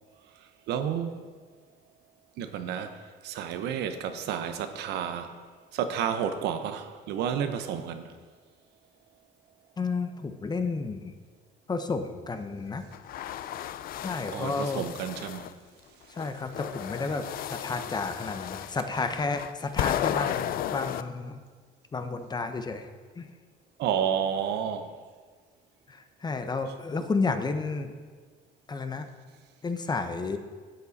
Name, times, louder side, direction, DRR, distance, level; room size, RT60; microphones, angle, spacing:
voice 1, 0.7-1.2 2.4-3.0 3.2-5.3 5.7-8.1 14.3-15.5 23.8-24.9, right 8 dB, 80° right, 8 dB, 0.8 m, -31 dB
voice 2, 9.8-11.2 11.7-12.9 14.0-14.9 16.1-21.4 21.9-22.9 23.2-23.3 25.9-27.9 28.7-29.1 29.6-30.4, left 4 dB, 25° left, 8 dB, 0.8 m, -31 dB
sound 1, 12.9-15.5 16.2-21.0, left 11 dB, 60° left, 0.4 m, -34 dB
11.5 x 8.3 x 4.1 m, 1.5 s
cardioid pair, 110°, 17 cm